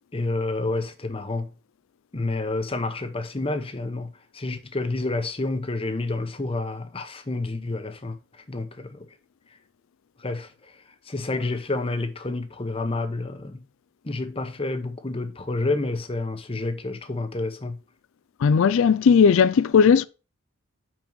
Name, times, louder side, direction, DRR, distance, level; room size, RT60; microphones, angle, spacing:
voice 1, 0.1-1.5 2.1-9.1 10.2-10.5 11.1-13.7 14.0-17.8, left 2 dB, 25° left, 0.8 m, -29 dB
voice 2, 18.4-20.0, left 6 dB, 65° left, 0.3 m, -17 dB
5.9 x 5.3 x 5.1 m
head